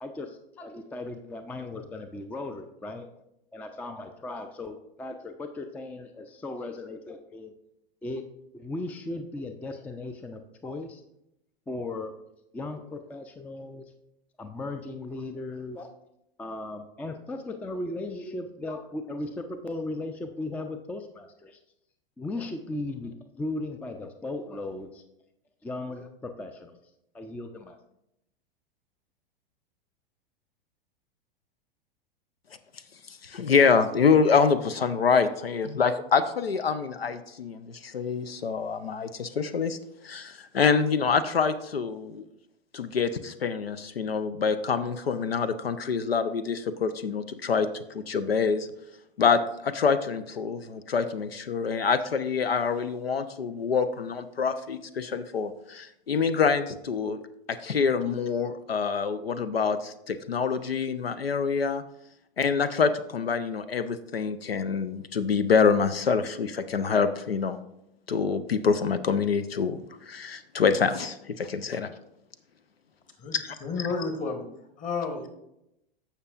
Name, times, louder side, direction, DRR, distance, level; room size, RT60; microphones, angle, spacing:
voice 1, 0.0-3.1 3.5-7.5 8.0-8.2 8.5-11.0 11.7-12.1 12.5-13.8 14.4-15.9 16.4-21.6 22.2-25.0 25.6-26.8 27.1-27.8, left 2 dB, 5° left, 8 dB, 0.4 m, -37 dB
voice 2, 33.2-39.8 40.0-42.2 42.7-48.7 49.2-57.2 57.5-61.8 62.4-67.6 68.1-71.9 73.3-73.6, left 5 dB, 90° left, 12 dB, 0.5 m, -26 dB
voice 3, 73.2-74.4 74.8-75.3, left 4 dB, 25° left, 6 dB, 1.2 m, -31 dB
14.5 x 5.7 x 2.4 m, 0.83 s
figure-of-eight pair, 95°, 29 cm